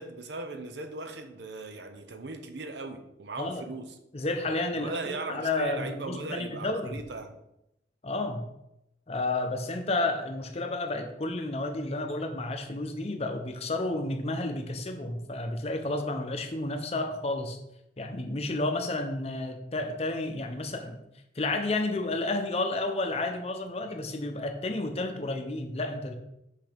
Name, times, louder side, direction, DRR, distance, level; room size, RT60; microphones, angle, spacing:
voice 1, 0.0-3.9 4.8-7.4, right 3 dB, 75° right, 0.7 m, -38 dB
voice 2, 4.1-4.9 5.3-6.9 8.0-8.5 9.1-17.6 18.0-21.0 21.4-26.2, left 2 dB, 35° left, 0.7 m, -31 dB
6.0 x 5.7 x 3.5 m
head